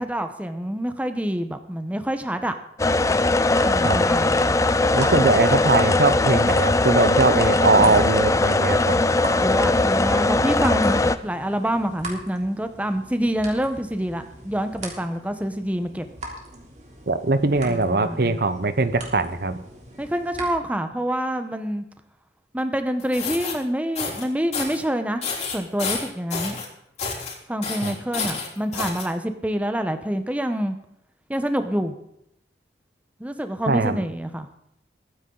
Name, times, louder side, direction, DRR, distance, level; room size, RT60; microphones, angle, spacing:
voice 1, 0.0-2.6 3.6-4.5 7.7-8.0 9.4-16.0 17.6-18.4 20.0-21.8 22.5-25.2 25.5-26.6 27.5-30.8 31.3-31.9 33.2-34.5, equal, 10° right, 8 dB, 0.9 m, -27 dB
sound 1, 2.8-11.2, left 2 dB, 20° left, 0.5 m, -20 dB
sound 2, 3.6-20.5, right 1 dB, 40° right, 3.3 m, -41 dB
voice 2, 4.9-9.0 17.1-19.6 27.8-27.9 33.7-34.0, right 3 dB, 60° right, 11 dB, 0.9 m, -21 dB
sound 3, 23.0-23.5 24.0-24.2 24.5-24.8 25.2-26.7 27.0-27.3 27.6-29.1, left 5 dB, 40° left, 3.6 m, -29 dB
22.0 x 9.8 x 3.9 m, 0.76 s
head